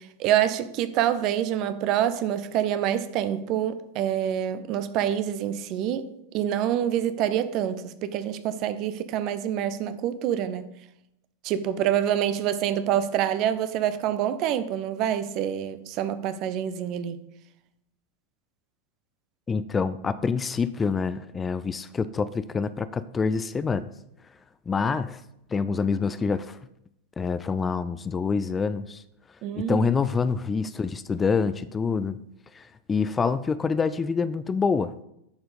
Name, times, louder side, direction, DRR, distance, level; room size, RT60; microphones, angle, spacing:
voice 1, 0.0-6.1 6.3-10.6 11.4-17.2 29.4-29.8, right 10 dB, 40° right, 0.6 m, -26 dB
voice 2, 19.5-23.9 24.7-25.2 25.5-26.6 27.2-29.0 29.6-32.2 32.5-34.9, left 5 dB, 15° left, 0.3 m, -26 dB
10.5 x 4.4 x 5.0 m
figure-of-eight pair, 90°, 0 cm